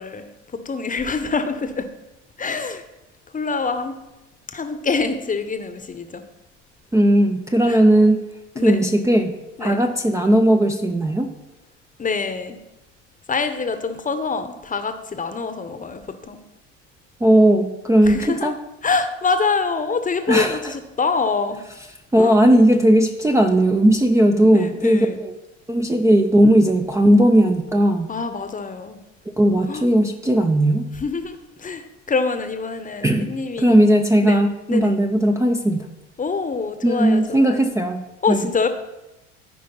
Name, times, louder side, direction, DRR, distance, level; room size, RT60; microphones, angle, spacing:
voice 1, 0.0-1.9 2.4-2.8 3.3-4.0 4.5-6.2 7.7-7.8 8.5-8.9 9.6-9.8 12.0-12.6 13.3-16.4 18.0-18.5 18.8-21.6 22.2-22.4 24.5-25.2 28.1-29.0 29.7-29.9 30.9-33.8 34.2-34.4 34.7-34.9 36.2-37.7 38.2-38.7, left 4 dB, 20° left, 9 dB, 1.0 m, -25 dB
voice 2, 6.9-8.2 8.6-9.3 9.6-11.3 17.2-18.5 20.3-20.6 22.1-25.3 25.7-28.1 29.4-30.9 33.0-33.3 33.6-35.8 36.8-38.4, right 1 dB, 10° right, 4 dB, 0.7 m, -17 dB
14.0 x 5.1 x 4.0 m, 0.97 s
figure-of-eight pair, 65°, 36 cm